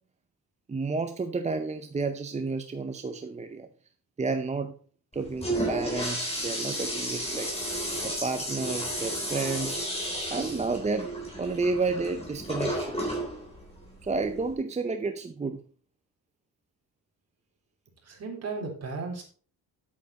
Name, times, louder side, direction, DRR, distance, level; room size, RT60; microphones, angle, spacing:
voice 1, 0.7-3.7 4.2-4.7 5.1-7.5 8.0-9.9 10.3-13.2 14.0-15.6, right 4 dB, 20° right, 7 dB, 0.6 m, -31 dB
Toilet flush, 5.1-14.5, equal, 15° left, 3.8 m, -33 dB
voice 2, 18.0-19.2, right 4 dB, 40° right, -1 dB, 3.9 m, -35 dB
9.3 x 8.6 x 4.2 m, 0.41 s
wide cardioid pair, 160°, 37 cm